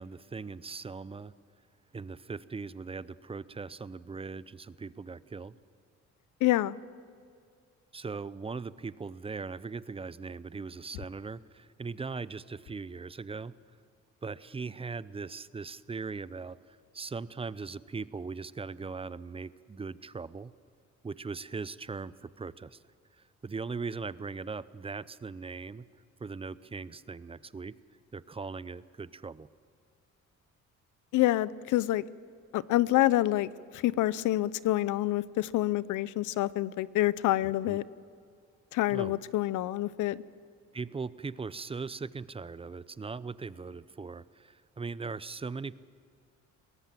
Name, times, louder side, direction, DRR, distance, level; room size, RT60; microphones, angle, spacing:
voice 1, 0.0-1.3 1.9-5.6 7.9-13.6 14.2-20.5 21.0-22.8 23.2-25.8 26.2-27.7 28.1-29.5 37.4-37.8 38.9-39.2 40.7-45.7, right 4 dB, 20° right, 18 dB, 0.5 m, -39 dB
voice 2, 6.4-6.8 31.1-32.0 32.5-37.8 38.7-40.2, left 15 dB, 80° left, 19 dB, 0.6 m, -27 dB
22.5 x 18.0 x 7.6 m, 2.2 s
cardioid pair, 90°, 30 cm